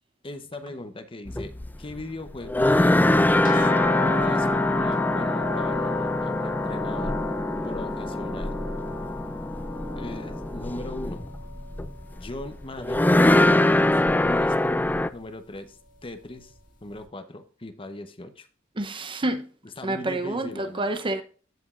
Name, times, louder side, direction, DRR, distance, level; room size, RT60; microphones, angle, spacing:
voice 1, 0.2-1.5 1.8-3.7 4.0-7.1 7.6-8.6 10.0-11.2 12.1-13.1 13.4-16.5 16.8-18.5 19.6-20.9, left 2 dB, 25° left, 0.8 m, -38 dB
sound 1, 1.3-15.1, left 1 dB, 10° left, 0.3 m, -23 dB
sound 2, 3.4-12.3 12.6-13.5 14.2-14.3 14.7-14.9, left 8 dB, 40° left, 1.8 m, -36 dB
voice 2, 18.8-19.5 19.8-21.2, right 2 dB, 25° right, 0.7 m, -28 dB
15.5 x 5.2 x 2.4 m
head